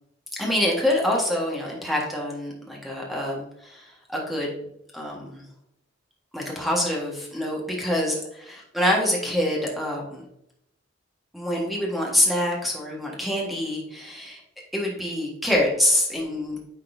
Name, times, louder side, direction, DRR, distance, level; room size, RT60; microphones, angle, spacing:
voice 1, 0.4-4.6 4.9-5.4 6.3-8.2 8.7-10.2 11.3-14.4 14.7-16.6, left 1 dB, ahead, -3 dB, 1.5 m, -25 dB
9.2 x 4.1 x 2.6 m, 0.78 s
head